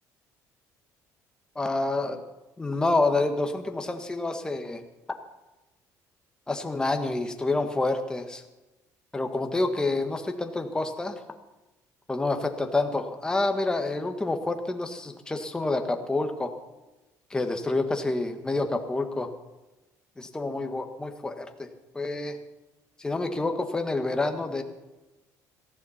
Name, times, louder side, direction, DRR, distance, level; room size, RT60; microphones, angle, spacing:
voice 1, 1.5-2.2 2.6-4.8 6.5-8.4 9.1-11.1 12.1-16.5 17.3-19.3 20.2-21.7 21.9-22.4 23.0-24.6, left 2 dB, 10° left, 5 dB, 1.5 m, -28 dB
18.0 x 15.0 x 4.3 m, 1.1 s
cardioid pair, 140°, 7 cm